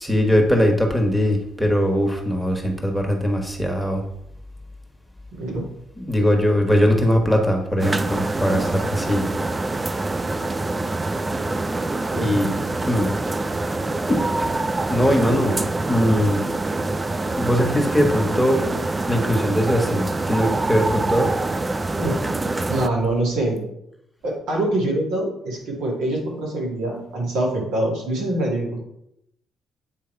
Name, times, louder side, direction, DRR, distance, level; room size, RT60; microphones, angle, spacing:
voice 1, 0.0-4.0 6.0-9.2 12.2-12.6 12.9-13.1 14.1-14.5 14.9-15.6 15.9-16.5 17.4-18.6 19.1-21.3, equal, ahead, 2 dB, 1.4 m, -20 dB
voice 2, 5.3-5.7 12.1-12.5 22.0-22.2 22.7-23.6 24.2-28.8, right 1 dB, 85° right, -3 dB, 2.3 m, -24 dB
sound 1, 7.8-22.9, right 2 dB, 20° right, 0.4 m, -25 dB
8.7 x 3.4 x 4.5 m, 0.79 s
cardioid pair, 90°, 0 cm